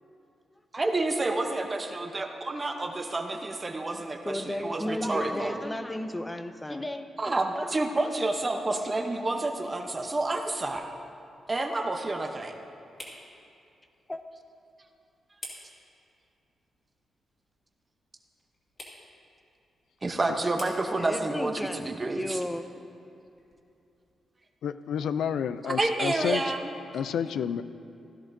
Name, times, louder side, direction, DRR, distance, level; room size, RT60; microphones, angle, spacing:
voice 1, 0.7-5.6 7.2-10.9 11.5-12.6 20.0-22.4 25.6-26.7, right 2 dB, 20° right, 4 dB, 0.8 m, -29 dB
voice 2, 4.2-7.1 14.1-14.2 21.0-22.6, left 1 dB, 10° left, 8 dB, 0.5 m, -33 dB
sound 1, 9.4-24.2, left 1 dB, 25° left, 2.1 m, -53 dB
voice 3, 24.6-26.4 26.9-27.6, left 8 dB, 85° left, 13 dB, 0.3 m, -29 dB
16.5 x 13.0 x 2.6 m, 2.7 s
wide cardioid pair, 160°, 0 cm